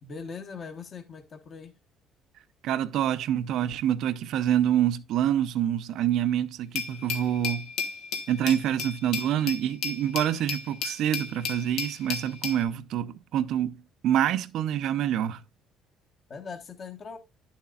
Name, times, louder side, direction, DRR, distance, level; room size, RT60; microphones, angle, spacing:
voice 1, 0.0-1.7 16.3-17.2, left 5 dB, 35° left, 1.1 m, -40 dB
voice 2, 2.6-7.7 8.3-15.4, right 10 dB, 65° right, 0.6 m, -26 dB
Glass, 6.7-12.6, left 6 dB, 80° left, 1.4 m, -34 dB
10.5 x 7.2 x 2.4 m
cardioid pair, 140°, 0 cm